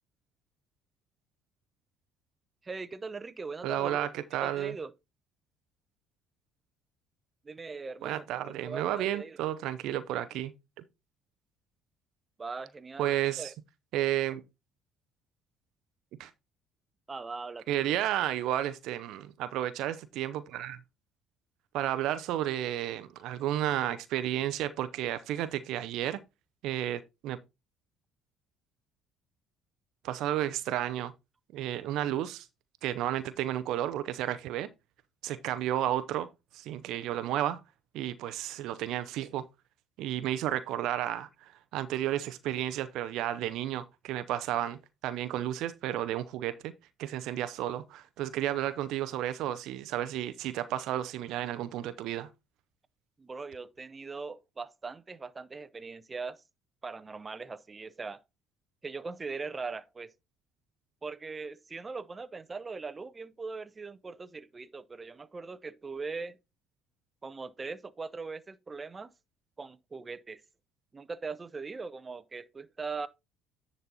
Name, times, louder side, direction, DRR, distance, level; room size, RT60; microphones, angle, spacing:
voice 1, 2.6-4.1 4.4-4.9 7.4-8.2 8.6-9.4 12.4-13.5 17.1-17.6 53.2-56.4 56.8-58.2 58.8-60.1 61.0-66.4 67.2-69.1 69.6-70.4 70.9-73.1, right 4 dB, 30° right, 0.7 m, -40 dB
voice 2, 3.6-4.8 8.0-10.5 13.0-13.5 13.9-14.4 16.2-16.3 17.7-20.8 21.7-26.2 26.6-27.4 30.0-31.1 31.5-32.5 32.8-34.7 35.2-36.3 36.5-37.6 37.9-39.4 40.0-46.7 47.0-52.3, right 12 dB, 65° right, 0.6 m, -32 dB
10.0 x 4.1 x 4.1 m
hypercardioid pair, 55°, 0 cm